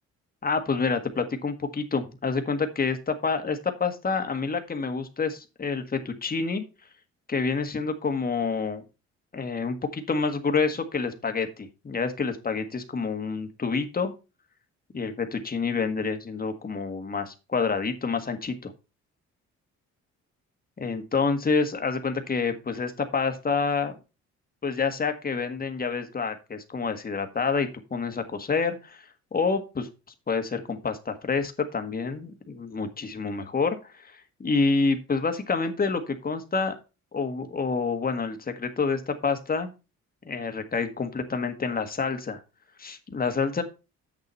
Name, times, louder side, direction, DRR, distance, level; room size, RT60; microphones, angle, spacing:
voice 1, 0.4-6.6 7.3-8.8 9.3-14.1 14.9-18.7 20.8-23.9 24.6-29.9 30.3-36.7 37.1-39.7 40.2-42.4 42.8-43.6, left 4 dB, 30° left, 7 dB, 1.7 m, -28 dB
8.0 x 6.9 x 4.4 m, 0.29 s
cardioid pair, 90°, 30 cm